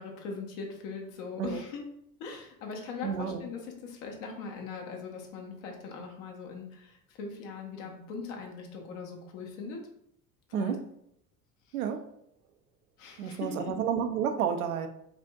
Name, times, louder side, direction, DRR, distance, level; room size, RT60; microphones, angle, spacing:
voice 1, 0.0-1.9 2.2-9.8 10.5-10.8 11.7-11.8 13.0-13.8, left 5 dB, 55° left, 2 dB, 1.0 m, -40 dB
voice 2, 3.0-3.4 10.5-10.8 11.7-12.0 13.2-14.9, right 8 dB, 70° right, 6 dB, 0.6 m, -30 dB
5.0 x 2.5 x 2.4 m, 0.74 s
figure-of-eight pair, 70°, 45 cm